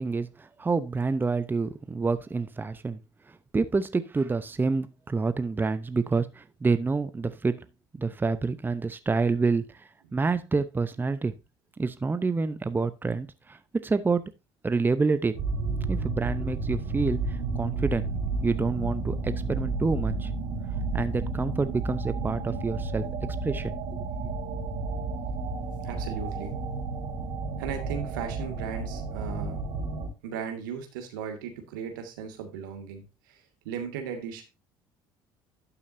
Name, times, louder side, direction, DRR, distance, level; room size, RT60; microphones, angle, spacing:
voice 1, 0.0-3.0 3.5-7.7 8.0-11.3 11.8-14.3 14.6-15.4 15.9-18.1 18.4-20.3 20.9-23.0 23.4-23.7, right 4 dB, 20° right, 0.8 m, -28 dB
sound 1, 15.3-30.1, right 3 dB, 65° right, 3.5 m, -31 dB
voice 2, 25.8-26.5 27.6-29.6 30.2-34.4, right 7 dB, 85° right, 2.1 m, -37 dB
12.0 x 6.9 x 2.7 m
hypercardioid pair, 65°, 10 cm